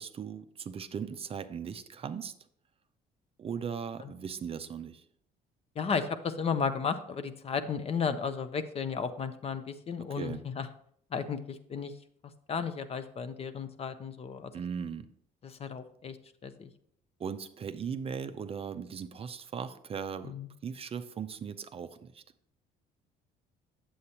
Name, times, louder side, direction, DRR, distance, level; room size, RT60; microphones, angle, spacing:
voice 1, 0.0-2.3 3.4-5.1 10.0-10.4 14.5-15.1 17.2-22.2, right 7 dB, 35° right, 10 dB, 0.4 m, -38 dB
voice 2, 5.8-10.7 11.1-11.9 12.5-14.5 15.4-16.2 16.4-16.7 20.2-20.5, left 6 dB, 35° left, 11 dB, 0.6 m, -34 dB
8.2 x 7.7 x 2.8 m, 0.67 s
cardioid pair, 110°, 17 cm